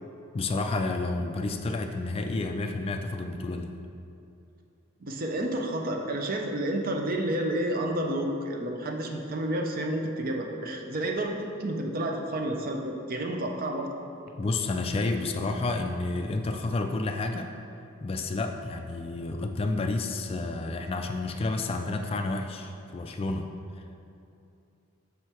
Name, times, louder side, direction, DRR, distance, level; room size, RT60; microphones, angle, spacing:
voice 1, 0.3-3.7 14.4-17.5 18.0-23.5, left 2 dB, 30° left, 5 dB, 0.3 m, -30 dB
voice 2, 5.0-13.9, right 1 dB, 45° right, 3 dB, 0.6 m, -30 dB
6.4 x 5.5 x 4.4 m, 2.6 s
head